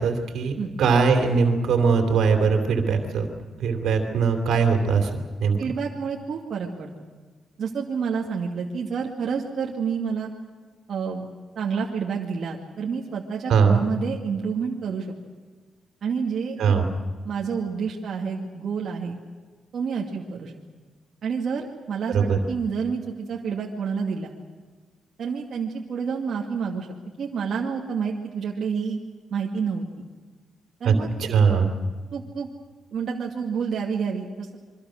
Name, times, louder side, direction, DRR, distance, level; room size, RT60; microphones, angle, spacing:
voice 1, 0.0-3.3 3.6-5.1 5.4-5.6 13.5-13.8 16.6-16.8 22.1-22.4 30.8-31.7, right 5 dB, 75° right, 5 dB, 3.0 m, -21 dB
voice 2, 5.6-6.9 7.6-10.3 10.9-11.3 11.6-15.1 16.0-16.8 17.2-19.2 19.7-20.5 21.2-24.3 25.2-26.9 27.2-29.0 29.3-29.9 30.8-31.1 32.1-32.5 32.9-34.6, right 6 dB, 55° right, -1 dB, 2.0 m, -29 dB
27.0 x 24.0 x 6.4 m, 1.4 s
wide cardioid pair, 170°, 0 cm